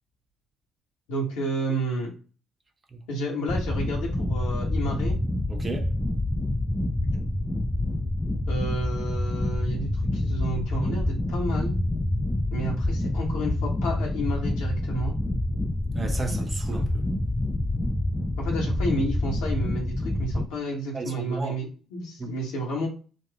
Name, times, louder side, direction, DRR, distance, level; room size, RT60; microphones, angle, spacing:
voice 1, 1.1-2.1 3.1-5.1 8.5-11.8 12.5-15.2 18.4-22.9, right 1 dB, 65° left, 1.1 m, -31 dB
sound 1, 3.5-20.5, left 1 dB, 10° left, 0.3 m, -27 dB
voice 2, 5.5-5.9 15.9-17.1 20.9-21.6 22.2-22.3, right 3 dB, 30° right, 0.8 m, -33 dB
4.0 x 2.4 x 3.5 m
figure-of-eight pair, 45°, 0 cm